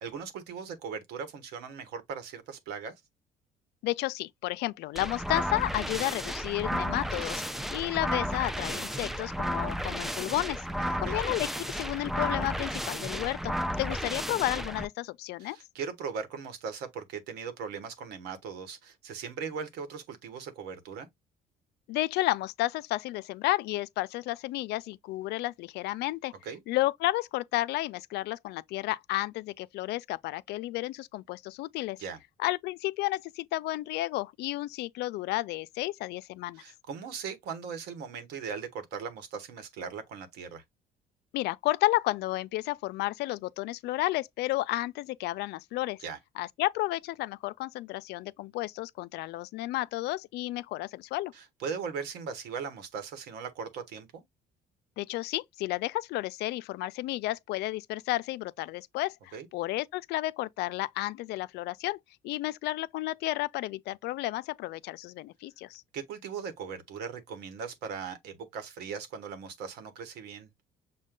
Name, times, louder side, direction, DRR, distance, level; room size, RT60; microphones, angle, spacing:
voice 1, 0.0-2.9 10.8-11.2 15.4-21.1 26.4-26.6 32.0-32.2 36.5-40.6 46.0-46.2 51.3-54.2 59.3-59.5 65.9-70.5, right 6 dB, 90° right, 1.3 m, -39 dB
voice 2, 3.8-7.4 7.7-10.7 11.0-15.6 21.9-26.3 26.7-32.0 32.4-36.6 41.3-46.0 46.4-51.3 55.0-62.0 62.2-65.8, left 17 dB, 80° left, 0.4 m, -32 dB
sound 1, 5.0-14.8, equal, ahead, 0.4 m, -33 dB
6.4 x 2.2 x 3.6 m
cardioid pair, 110°, 17 cm